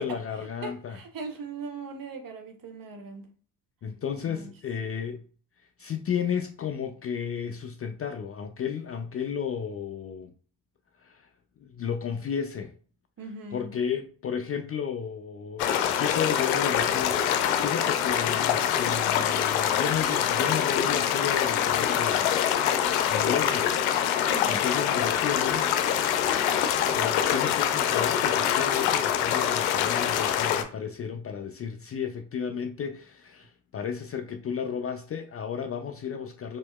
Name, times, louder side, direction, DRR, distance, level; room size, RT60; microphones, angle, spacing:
voice 1, 0.0-1.0 3.8-5.2 5.8-10.3 11.0-11.3 11.6-12.7 13.5-22.3 23.1-23.7 24.5-25.7 26.9-36.6, left 7 dB, 30° left, 0.4 m, -33 dB
voice 2, 0.6-3.3 4.2-4.5 13.2-13.7 24.3-24.6, right 4 dB, 45° right, 0.9 m, -39 dB
sound 1, 15.6-30.6, left 9 dB, 80° left, 0.6 m, -25 dB
4.3 x 2.8 x 2.2 m
hypercardioid pair, 50°, 49 cm